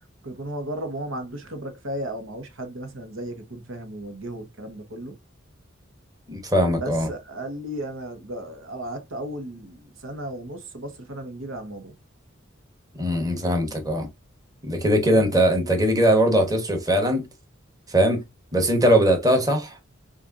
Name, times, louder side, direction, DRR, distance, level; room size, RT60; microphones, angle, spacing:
voice 1, 0.2-5.2 6.8-12.0 15.0-15.4, right 1 dB, 85° right, 1.1 m, -35 dB
voice 2, 6.3-7.1 13.0-14.1 14.6-17.3 17.9-18.2 18.5-19.8, equal, 20° right, 1.2 m, -20 dB
6.3 x 2.5 x 2.6 m
head